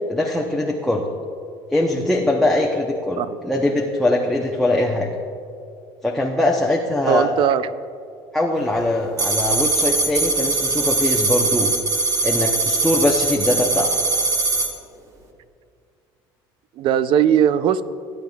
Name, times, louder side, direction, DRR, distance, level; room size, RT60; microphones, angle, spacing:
voice 1, 0.1-1.0 1.7-5.1 6.0-7.5 8.3-11.7 12.2-13.9, left 1 dB, 5° left, -1 dB, 0.7 m, -21 dB
voice 2, 7.1-7.7 13.8-13.9 16.8-17.8, right 9 dB, 55° right, 15 dB, 0.4 m, -19 dB
sound 1, 9.2-14.7, right 3 dB, 30° right, 1.4 m, -21 dB
17.0 x 9.2 x 2.3 m, 2.4 s
cardioid pair, 120°, 10 cm